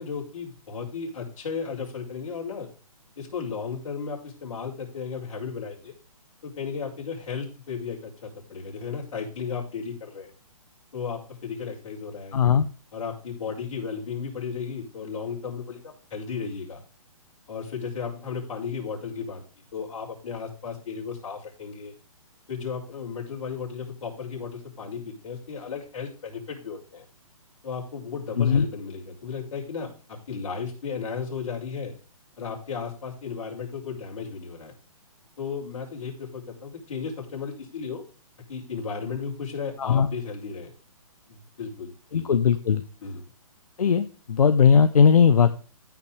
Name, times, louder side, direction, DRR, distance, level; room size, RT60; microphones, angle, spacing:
voice 1, 0.0-2.7 3.2-6.0 6.4-10.3 10.9-12.4 12.9-16.8 17.5-19.4 19.7-21.9 22.5-27.0 27.6-31.9 32.4-34.7 35.4-38.0 38.5-40.7 41.3-42.3 43.0-43.2, left 6 dB, 60° left, -3 dB, 6.3 m, -34 dB
voice 2, 12.3-12.7 28.4-28.7 39.8-40.1 42.1-42.8 43.8-45.5, left 6 dB, 80° left, 10 dB, 0.9 m, -19 dB
16.0 x 6.0 x 3.3 m, 0.36 s
hypercardioid pair, 160°, 19 cm